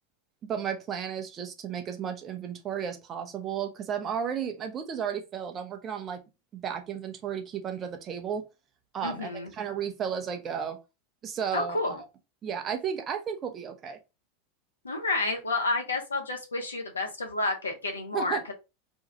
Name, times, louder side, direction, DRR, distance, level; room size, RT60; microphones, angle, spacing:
voice 1, 0.5-6.2 6.5-8.4 8.9-10.8 11.2-11.8 12.4-14.0 18.1-18.5, right 8 dB, 30° right, 0.7 m, -33 dB
voice 2, 9.0-9.5 11.5-12.0 14.8-18.5, left 2 dB, 80° left, 0.8 m, -30 dB
2.7 x 2.4 x 3.9 m
figure-of-eight pair, 85°, 0 cm